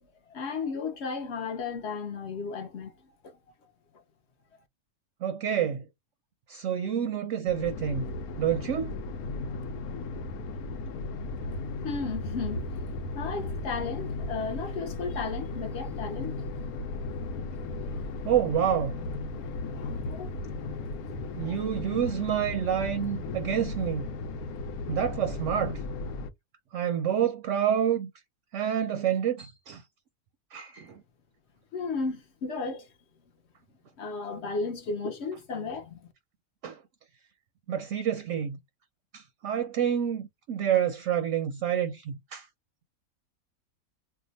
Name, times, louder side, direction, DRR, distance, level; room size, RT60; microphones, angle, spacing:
voice 1, 0.3-2.9 3.2-3.4 11.8-12.6 13.1-16.4 19.3-20.3 21.4-21.6 31.7-32.9 34.0-36.1, left 4 dB, 55° left, 0.8 m, -34 dB
voice 2, 5.2-5.8 6.5-8.1 8.4-8.9 18.2-19.0 21.3-24.1 24.9-25.7 26.7-28.1 28.5-29.8 30.5-31.0 36.6-36.8 37.7-38.6 39.1-42.5, right 9 dB, 70° right, 0.8 m, -28 dB
sound 1, 7.5-26.3, left 3 dB, 80° left, 1.1 m, -35 dB
2.7 x 2.2 x 3.9 m
omnidirectional pair, 1.5 m